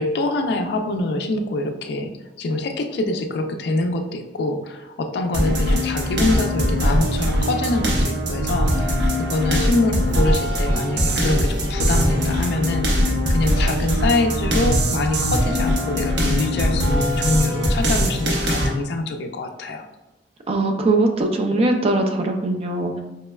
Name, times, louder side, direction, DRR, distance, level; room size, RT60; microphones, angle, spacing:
voice 1, 0.0-2.1 2.4-19.9, left 2 dB, 65° left, 5 dB, 0.3 m, -24 dB
sound 1, 5.3-18.7, equal, 85° right, 0.7 m, -21 dB
sound 2, 12.1-14.6, equal, 20° left, 0.8 m, -32 dB
voice 2, 20.5-23.0, right 2 dB, 35° right, 3 dB, 0.3 m, -21 dB
4.6 x 2.1 x 2.2 m, 1.0 s
head